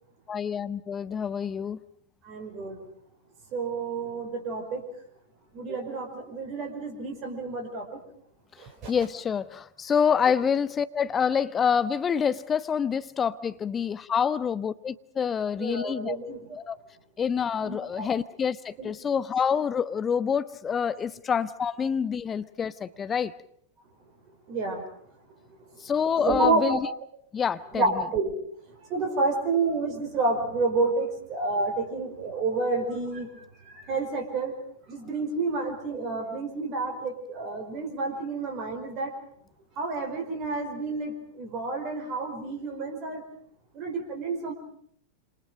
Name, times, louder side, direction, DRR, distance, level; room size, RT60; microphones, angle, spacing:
voice 1, 0.3-1.8 8.9-16.2 16.7-16.8 17.2-23.3 25.8-26.9 27.3-28.1, left 7 dB, 20° left, 1.1 m, -27 dB
voice 2, 2.2-2.8 3.5-4.8 5.5-8.0 8.6-8.9 15.6-16.6 17.6-18.1 18.8-18.9 24.5-24.8 26.1-26.8 27.7-28.3 28.9-34.5 34.9-39.1 39.8-43.2 43.7-44.5, right 3 dB, 35° right, 5.2 m, -29 dB
27.5 x 27.5 x 5.2 m
figure-of-eight pair, 90°, 0 cm